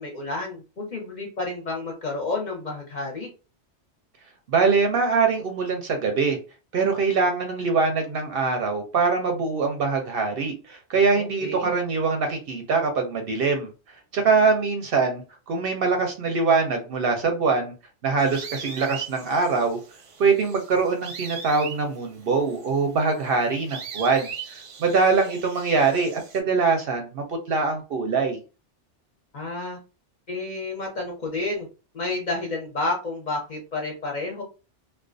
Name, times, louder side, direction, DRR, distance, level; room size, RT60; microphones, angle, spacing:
voice 1, 0.0-3.3 11.4-11.7 29.3-29.8 30.3-31.7 31.9-34.4, left 2 dB, 50° left, 0 dB, 0.6 m, -30 dB
voice 2, 4.5-6.4 6.7-13.7 14.1-15.2 15.5-17.7 18.0-19.8 20.2-28.4, right 4 dB, 65° right, 4 dB, 0.7 m, -23 dB
sound 1, 18.2-26.4, right 7 dB, 85° right, 1.0 m, -40 dB
2.3 x 2.1 x 2.4 m, 0.32 s
omnidirectional pair, 1.2 m